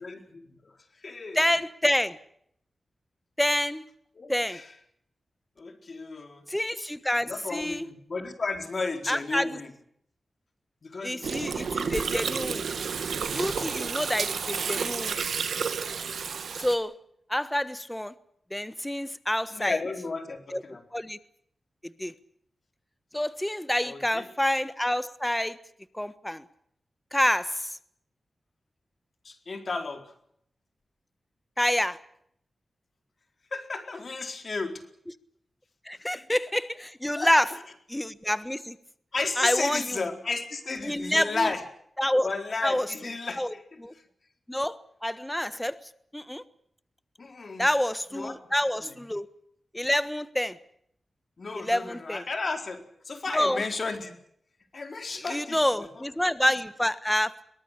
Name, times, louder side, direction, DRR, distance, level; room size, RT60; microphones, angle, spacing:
voice 1, 0.0-1.4 4.2-4.7 5.6-6.5 7.3-9.7 10.8-12.0 19.5-20.8 23.8-24.3 29.2-30.1 33.5-34.8 35.9-36.2 37.1-37.3 39.1-41.6 42.2-43.8 47.2-47.7 48.1-48.4 48.8-49.0 51.4-54.1 54.7-56.1, left 3 dB, 55° left, 6 dB, 4.3 m, -34 dB
voice 2, 1.3-2.2 3.4-3.8 4.3-4.6 6.5-7.9 9.1-9.6 11.0-12.7 13.3-15.2 16.6-16.9 17.3-18.1 18.5-19.8 20.5-20.6 20.9-21.2 22.0-22.1 23.1-25.6 25.9-26.4 27.1-27.8 31.6-32.0 35.8-37.5 37.9-38.8 39.4-40.0 40.8-41.5 42.0-42.3 42.6-42.9 43.4-43.5 43.8-43.9 44.5-45.8 46.1-46.4 47.6-49.3 49.7-50.6 51.6-52.2 53.3-53.6 55.3-57.3, left 1 dB, 10° left, 14 dB, 1.4 m, -27 dB
Gurgling, 11.2-16.8, right 6 dB, 90° right, 2.2 m, -31 dB
22.5 x 19.0 x 8.5 m, 0.69 s
cardioid pair, 65°, 0 cm